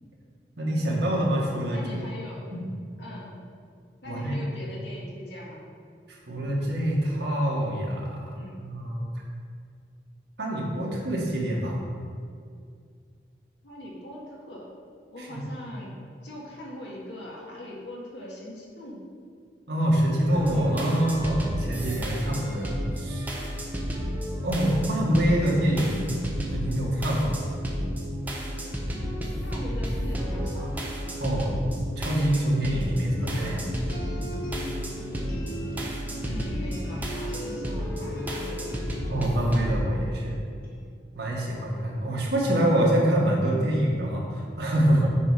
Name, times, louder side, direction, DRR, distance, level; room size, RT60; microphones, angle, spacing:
voice 1, 0.6-2.0 2.5-2.7 4.0-4.4 6.3-8.3 8.6-9.0 10.4-11.8 15.2-15.4 19.7-23.2 24.4-26.1 26.5-27.4 31.2-31.6 32.0-33.7 39.1-40.4 41.1-45.1, right 1 dB, 75° right, -3 dB, 1.7 m, -25 dB
voice 2, 1.7-2.4 3.0-3.3 4.0-5.6 8.3-8.6 13.6-14.7 15.1-16.0 16.2-19.1 29.3-30.9 36.2-38.9, left 1 dB, 85° left, -3 dB, 1.8 m, -41 dB
sound 1, 20.3-39.7, equal, 10° right, 0.9 m, -32 dB
sound 2, 33.2-40.8, equal, 55° left, 1.3 m, -39 dB
8.2 x 4.7 x 4.8 m, 2.2 s
head